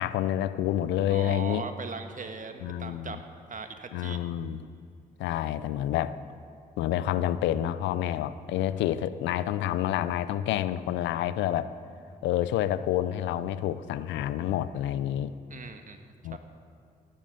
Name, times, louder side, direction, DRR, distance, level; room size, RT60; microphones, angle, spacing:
voice 1, 0.0-1.6 2.6-3.2 3.9-4.6 5.2-6.2 6.8-11.7 12.2-15.3 16.2-16.4, left 12 dB, 75° left, 15 dB, 0.6 m, -28 dB
voice 2, 1.1-3.2 3.5-4.2 15.5-16.4, right 4 dB, 45° right, 7 dB, 1.4 m, -39 dB
15.5 x 11.0 x 5.2 m, 2.5 s
hypercardioid pair, 45°, 19 cm